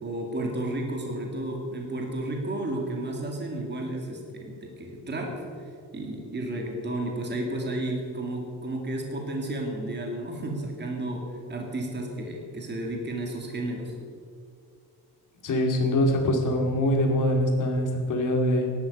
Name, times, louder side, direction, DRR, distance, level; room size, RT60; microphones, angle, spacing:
voice 1, 0.0-5.3 5.9-13.9, right 1 dB, 25° right, 1 dB, 2.4 m, -32 dB
voice 2, 15.4-18.7, left 1 dB, 50° left, 2 dB, 2.7 m, -24 dB
16.5 x 12.0 x 5.5 m, 2.4 s
cardioid pair, 160°, 40 cm